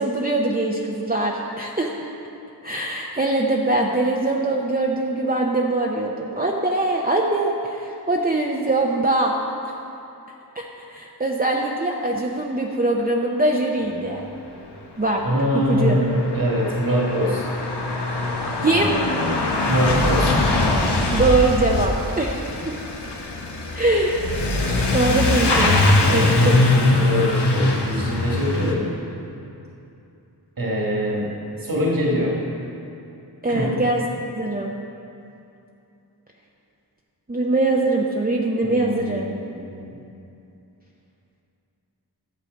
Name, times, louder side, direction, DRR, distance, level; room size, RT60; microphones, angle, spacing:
voice 1, 0.0-1.9 2.6-9.3 10.6-14.2 15.0-15.2 15.5-16.0 18.6-18.9 21.1-22.7 23.7-24.4 24.9-25.8 26.1-26.6 33.4-34.0 34.4-34.7 37.3-39.3, right 2 dB, 25° right, -2 dB, 0.7 m, -22 dB
Truck / Accelerating revving vroom, 15.1-15.2 15.3-28.7, left 2 dB, 90° left, 1.1 m, -22 dB
voice 2, 15.2-17.5 18.2-18.5 19.7-20.3 26.0-28.9 30.6-31.3 31.6-32.4 33.5-33.8 38.6-39.9, equal, 55° right, -3 dB, 1.9 m, -24 dB
11.5 x 7.2 x 5.3 m, 2.7 s
wide cardioid pair, 65°, 40 cm